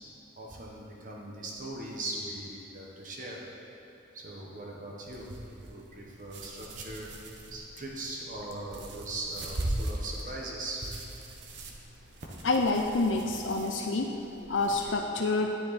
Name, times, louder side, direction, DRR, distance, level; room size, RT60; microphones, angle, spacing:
voice 1, 0.4-3.4 4.1-7.1 7.5-10.8, right 2 dB, 45° right, -2 dB, 1.2 m, -40 dB
sound 1, 5.1-14.9, right 1 dB, 70° right, 1.0 m, -40 dB
voice 2, 12.4-14.1 14.4-15.6, left 3 dB, 85° left, 2 dB, 0.6 m, -28 dB
10.0 x 9.6 x 4.2 m, 2.8 s
head